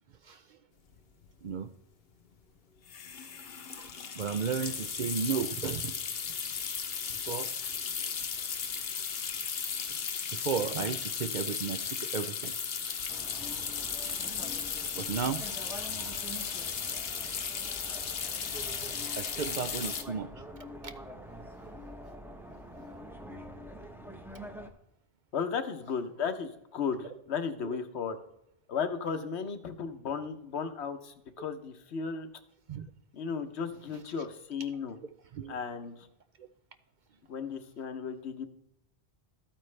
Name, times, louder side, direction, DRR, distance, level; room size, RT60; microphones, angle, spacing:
voice 1, 0.2-0.6 1.4-1.7 3.8-3.9 4.2-5.9 7.3-7.5 9.7-9.8 10.3-12.5 14.0-14.2 15.0-15.4 16.0-16.1 17.5-17.6 19.2-20.3 20.8-20.9 27.6-27.7 32.7-32.8 35.3-35.5 36.4-36.5, right 6 dB, 55° right, 10 dB, 0.6 m, -34 dB
sound 1, 0.9-1.0 1.2-1.5 2.9-20.0, left 7 dB, 60° left, 1.0 m, -36 dB
sound 2, 13.1-24.7, equal, ahead, 0.7 m, -45 dB
voice 2, 25.3-28.2 28.7-32.3 33.1-35.0 35.5-36.1 37.3-38.5, left 6 dB, 80° left, 9 dB, 1.1 m, -35 dB
13.0 x 8.8 x 3.3 m, 0.82 s
omnidirectional pair, 1.1 m